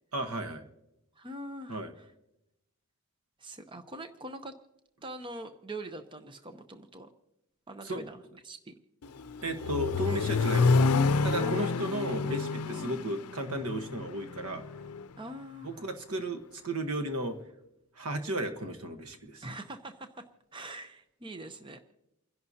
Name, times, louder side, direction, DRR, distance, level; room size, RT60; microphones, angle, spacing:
voice 1, 0.1-0.6 1.7-1.9 7.9-8.1 9.4-10.9 11.2-14.6 15.6-17.4 18.0-19.4, right 1 dB, 85° right, 7 dB, 1.3 m, -34 dB
voice 2, 1.1-2.1 3.4-4.5 5.0-7.1 7.7-8.7 11.4-11.5 12.6-12.8 15.2-15.9 19.4-20.2 20.5-21.8, right 1 dB, 20° right, 8 dB, 0.7 m, -43 dB
Accelerating revving vroom, 9.0-15.0, left 4 dB, 90° left, 0.5 m, -28 dB
29.5 x 11.0 x 2.8 m, 0.87 s
head